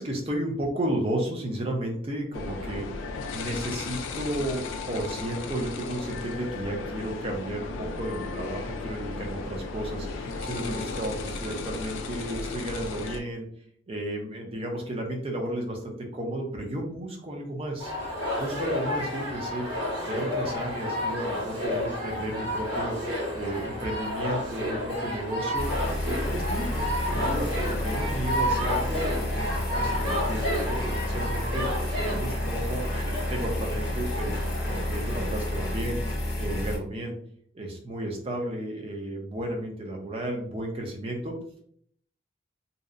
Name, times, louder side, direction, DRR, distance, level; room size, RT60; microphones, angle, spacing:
voice 1, 0.0-13.5 13.9-17.9 18.4-19.7 20.0-23.0 23.3-25.7 26.0-36.0 36.4-37.1 37.5-41.3, right 1 dB, 30° right, 1 dB, 0.4 m, -33 dB
sound 1, 2.3-13.2, left 3 dB, 85° left, 0.3 m, -35 dB
sound 2, 17.8-35.8, left 1 dB, 70° right, 1.4 m, -31 dB
sound 3, 25.5-36.8, left 1 dB, 50° left, 0.7 m, -30 dB
2.7 x 2.0 x 2.4 m, 0.63 s
head